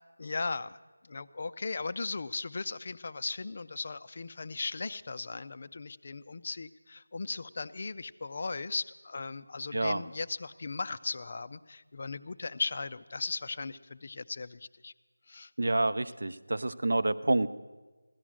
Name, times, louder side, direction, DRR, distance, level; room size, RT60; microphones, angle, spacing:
voice 1, 0.2-0.8 1.0-14.9 15.3-15.9, left 3 dB, 35° left, 14 dB, 0.4 m, -37 dB
voice 2, 9.7-10.0 15.6-17.5, right 2 dB, 65° right, 13 dB, 0.7 m, -28 dB
16.5 x 12.5 x 6.2 m, 1.3 s
figure-of-eight pair, 175°, 0 cm